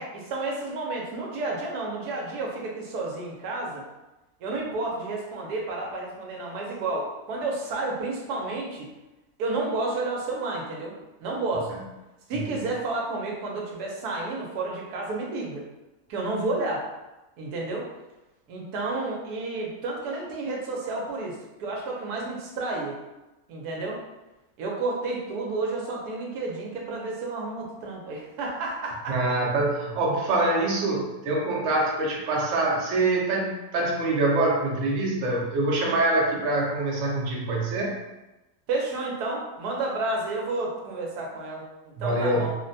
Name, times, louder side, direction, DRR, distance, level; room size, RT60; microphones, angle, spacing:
voice 1, 0.0-3.8 4.4-8.9 9.4-10.9 11.2-11.7 12.3-15.6 16.1-16.8 17.4-17.9 18.5-22.9 23.5-24.0 24.6-29.4 38.7-42.6, right 2 dB, 85° right, -2 dB, 1.2 m, -31 dB
voice 2, 29.1-38.0 42.0-42.5, right 2 dB, 65° right, -2 dB, 0.9 m, -25 dB
3.2 x 2.1 x 2.6 m, 1.0 s
omnidirectional pair, 1.6 m